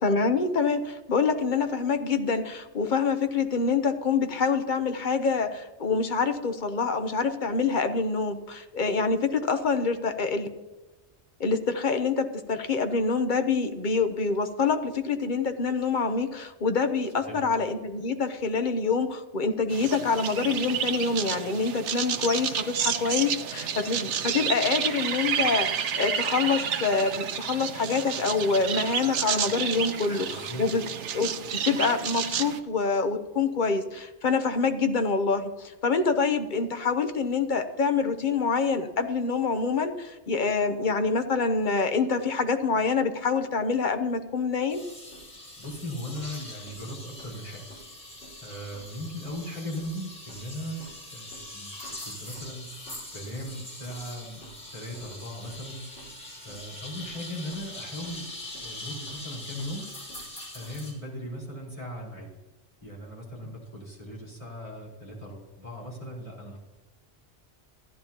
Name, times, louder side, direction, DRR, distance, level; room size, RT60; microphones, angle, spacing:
voice 1, 0.0-10.5 11.4-30.8 31.1-44.8, left 4 dB, 50° left, 8 dB, 0.9 m, -26 dB
sound 1, 19.7-32.6, right 8 dB, 85° right, 1.0 m, -30 dB
voice 2, 30.3-30.6 45.6-47.6 48.4-50.8 51.1-51.7 52.0-52.7 53.1-54.4 54.7-55.8 56.4-58.3 58.6-59.9 60.5-62.3 62.8-66.6, equal, 30° left, -5 dB, 4.1 m, -38 dB
sound 2, 44.7-60.9, left 1 dB, 70° left, 4.4 m, -42 dB
14.5 x 10.5 x 2.9 m, 1.1 s
omnidirectional pair, 1.2 m